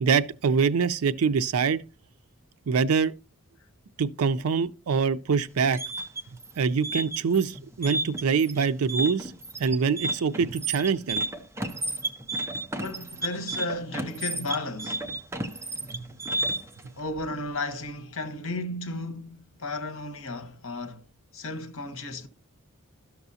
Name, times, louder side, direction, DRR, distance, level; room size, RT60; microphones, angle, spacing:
voice 1, 0.0-1.8 2.7-3.1 4.0-5.8 6.6-9.3 9.6-11.2 15.9-16.0, right 5 dB, 80° right, 0.5 m, -24 dB
sound 1, 5.5-16.8, right 2 dB, 10° right, 0.5 m, -32 dB
voice 2, 12.7-15.0 17.0-21.0 21.3-22.3, left 2 dB, 65° left, 1.1 m, -34 dB
12.5 x 5.9 x 2.7 m
head